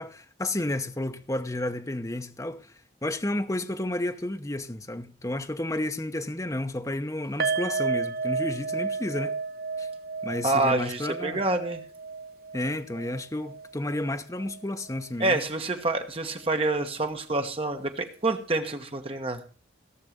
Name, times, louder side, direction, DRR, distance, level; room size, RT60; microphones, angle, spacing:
voice 1, 0.0-2.7 3.0-9.3 9.8-9.9 10.2-11.4 12.5-15.4, left 1 dB, 20° left, 0.9 m, -31 dB
sound 1, 7.4-14.6 14.9-15.1 15.4-15.5, right 4 dB, 55° right, 1.0 m, -32 dB
voice 2, 10.4-11.8 15.2-19.4, right 2 dB, 30° right, 1.5 m, -27 dB
17.0 x 6.7 x 6.7 m
head